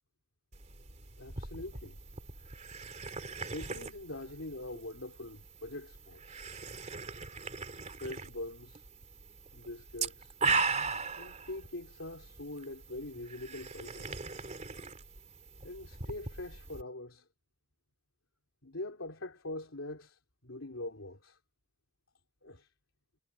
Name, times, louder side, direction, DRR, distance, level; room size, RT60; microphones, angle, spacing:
sound 1, 0.5-16.8, right 4 dB, 35° right, 3.2 m, -39 dB
voice 1, 1.2-2.0 3.4-6.4 8.0-8.8 9.5-10.3 11.2-14.2 15.6-17.3 18.6-21.4 22.4-22.7, left 2 dB, 70° left, 3.8 m, -43 dB
head